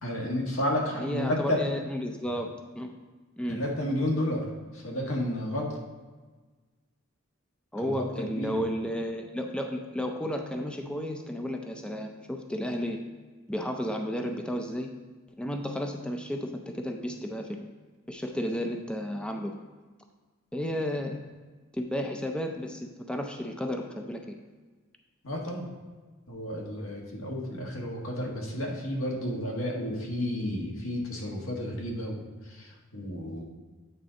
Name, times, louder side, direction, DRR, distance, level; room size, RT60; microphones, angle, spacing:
voice 1, 0.0-1.6 3.5-4.5 4.7-5.7 7.8-8.6 25.2-25.7 26.3-33.4, left 1 dB, 80° left, -1 dB, 1.5 m, -31 dB
voice 2, 0.9-2.9 3.4-3.6 7.7-13.0 13.5-14.9 15.4-17.6 18.1-19.5 20.5-21.2 21.7-24.4, equal, 5° left, 3 dB, 0.4 m, -33 dB
8.8 x 3.9 x 4.9 m, 1.3 s
head